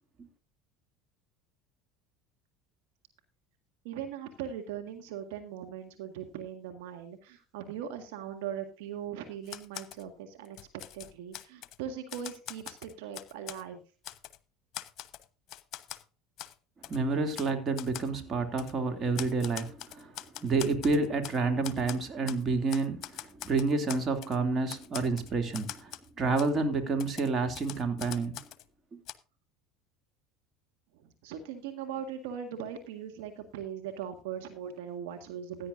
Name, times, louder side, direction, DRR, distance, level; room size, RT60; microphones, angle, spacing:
voice 1, 3.8-10.6 10.9-13.8 30.9-35.7, right 8 dB, 70° right, 1.7 m, -40 dB
Typewriter, 9.5-10.0 10.5-11.8 12.1-13.6 14.0-14.4 14.7-16.0 16.4-16.5 16.8-17.0 17.3-17.5 17.8-18.1 18.6-18.7 19.2-21.4 21.6-22.4 22.7-24.4 24.7-26.1 26.4-26.5 27.0-28.7 29.1-29.2, left 12 dB, 50° left, 1.0 m, -43 dB
voice 2, 16.9-25.9 26.2-28.4 28.9-29.0, right 3 dB, 35° right, 2.6 m, -29 dB
16.0 x 10.0 x 2.6 m
hypercardioid pair, 75°, 0 cm